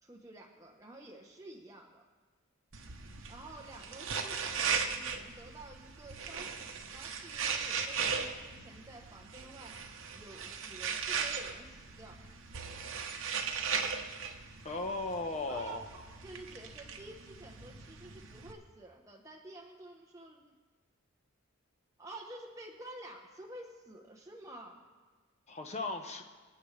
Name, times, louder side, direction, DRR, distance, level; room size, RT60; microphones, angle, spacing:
voice 1, 0.0-2.0 3.3-9.8 10.1-12.2 15.5-20.5 22.0-24.8, right 2 dB, 15° right, 0 dB, 0.9 m, -50 dB
sound 1, 2.7-18.5, right 6 dB, 65° right, 1.0 m, -38 dB
voice 2, 14.6-15.8 25.5-26.2, left 3 dB, 35° left, 4 dB, 1.0 m, -36 dB
26.0 x 8.8 x 3.3 m, 1.4 s
head